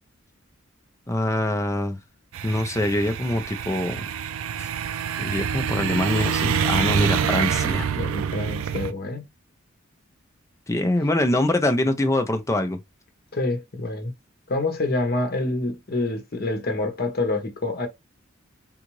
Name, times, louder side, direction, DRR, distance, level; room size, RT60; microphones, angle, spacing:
voice 1, 1.1-2.0 2.4-4.0 4.6-4.7 5.2-7.9 10.7-12.8, left 1 dB, 15° left, 0.5 m, -24 dB
sound 1, 2.3-8.9, right 8 dB, 85° right, 0.4 m, -26 dB
voice 2, 8.0-9.2 13.3-14.1 14.5-17.9, left 2 dB, 50° left, 0.9 m, -27 dB
3.7 x 2.5 x 3.0 m
head